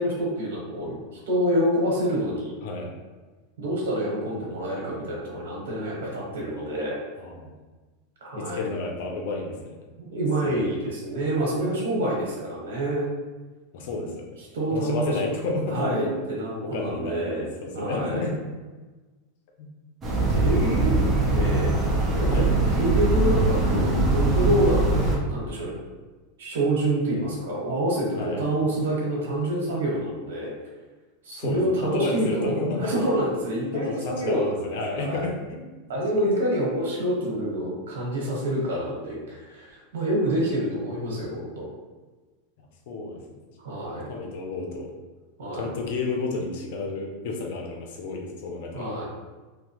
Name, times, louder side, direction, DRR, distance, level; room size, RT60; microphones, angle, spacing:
voice 1, 0.0-2.5 3.6-7.0 8.2-8.7 10.0-13.1 14.5-15.3 15.7-17.5 17.7-18.3 20.3-21.8 22.1-22.4 22.8-25.8 26.4-30.5 31.2-35.3 35.9-41.7 43.6-44.1 45.4-45.7 48.7-49.0, right 1 dB, 80° right, -4 dB, 0.9 m, -27 dB
voice 2, 2.6-2.9 7.2-7.5 8.4-9.8 10.4-10.7 13.7-14.4 14.7-16.2 16.6-18.4 19.6-19.7 22.3-22.5 28.2-28.4 31.4-32.9 33.5-35.6 42.9-43.4 43.8-44.9 45.5-48.9, left 3 dB, 65° left, 2 dB, 0.6 m, -31 dB
sound 1, 20.0-25.2, right 2 dB, 20° right, 0.6 m, -22 dB
2.8 x 2.1 x 3.0 m, 1.3 s
supercardioid pair, 140°, 0 cm